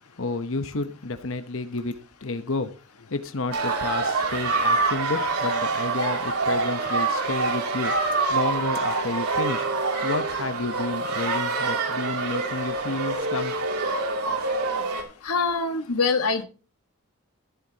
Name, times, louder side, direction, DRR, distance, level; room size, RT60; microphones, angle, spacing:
voice 1, 0.2-2.7 3.0-9.7 10.0-13.5, left 3 dB, 65° left, 10 dB, 1.0 m, -31 dB
sound 1, 3.5-15.0, right 3 dB, 90° right, 2.8 m, -26 dB
voice 2, 15.2-16.4, left 4 dB, 90° left, 7 dB, 1.5 m, -24 dB
15.0 x 8.2 x 2.9 m, 0.34 s
head